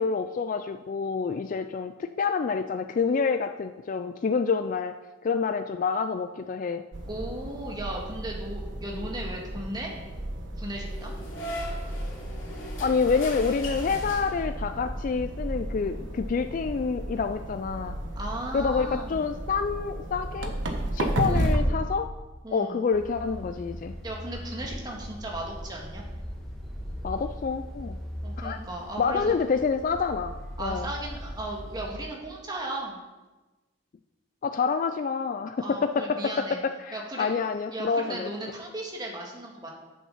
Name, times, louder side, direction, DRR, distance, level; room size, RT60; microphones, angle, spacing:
voice 1, 0.0-4.9 5.2-6.8 8.9-9.1 12.8-17.9 18.5-20.5 20.9-22.1 22.5-23.9 27.0-28.0 28.4-28.6 29.0-30.9 34.4-35.6 35.8-36.2 36.6-38.3, left 5 dB, 45° left, 8 dB, 0.3 m, -27 dB
sound 1, 6.9-21.6, right 1 dB, 70° right, 1.2 m, -33 dB
voice 2, 7.1-9.9 10.6-11.1 18.1-19.2 21.2-21.8 22.4-22.8 24.0-26.0 28.2-29.3 30.6-33.0 35.6-36.6 36.9-37.3 37.7-39.7, right 1 dB, 20° right, -1 dB, 1.7 m, -36 dB
sound 2, 10.8-14.7, left 1 dB, 85° left, 2.5 m, -39 dB
sound 3, 22.9-31.9, equal, ahead, 1.7 m, -39 dB
8.2 x 7.3 x 5.6 m, 1.2 s
head